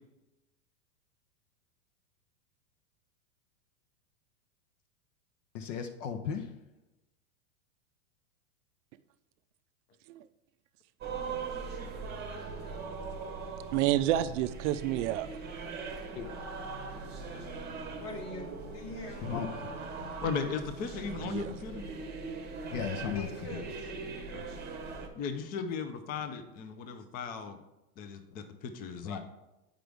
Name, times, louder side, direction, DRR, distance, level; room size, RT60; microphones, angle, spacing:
voice 1, 5.5-6.5 16.2-16.3 19.2-20.2 22.7-23.6 29.0-29.2, left 7 dB, 55° left, 6 dB, 0.7 m, -37 dB
sound 1, 11.0-25.1, right 4 dB, 20° right, 0.9 m, -40 dB
voice 2, 13.7-15.4 21.1-21.5, right 13 dB, 55° right, 14 dB, 0.5 m, -29 dB
voice 3, 18.0-19.3 23.1-24.1 24.5-24.6, left 2 dB, 90° left, 1 dB, 1.7 m, -43 dB
voice 4, 20.2-21.9 24.3-24.4 25.1-27.6 28.0-29.2, left 5 dB, 20° left, 8 dB, 0.4 m, -36 dB
7.7 x 5.1 x 3.4 m, 0.97 s
hypercardioid pair, 115°, 45 cm